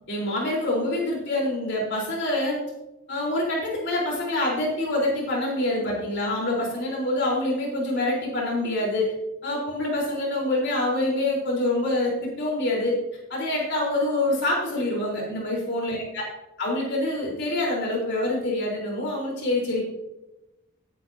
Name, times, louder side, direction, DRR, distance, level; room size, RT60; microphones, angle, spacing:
voice 1, 0.1-2.6 3.1-9.1 9.4-12.9 13.3-16.2 16.6-19.8, left 1 dB, 55° left, -4 dB, 4.1 m, -26 dB
17.0 x 9.5 x 2.8 m, 0.97 s
head